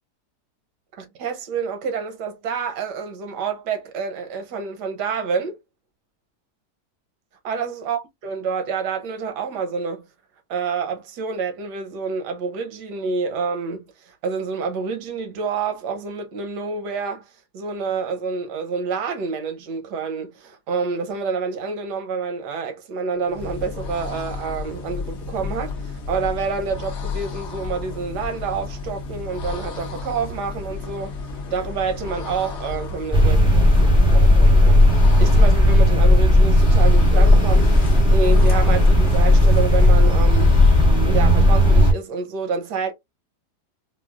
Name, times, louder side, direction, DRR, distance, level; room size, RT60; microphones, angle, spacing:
voice 1, 1.0-5.6 7.4-10.0 10.5-17.3 17.5-31.2 31.5-34.9 35.2-40.5 41.0-42.9, right 5 dB, 90° right, 1.4 m, -28 dB
sound 1, 23.2-41.0, left 3 dB, 55° left, 0.8 m, -31 dB
sound 2, 33.1-41.9, left 1 dB, 5° right, 1.0 m, -14 dB
4.2 x 2.2 x 2.3 m
omnidirectional pair, 1.7 m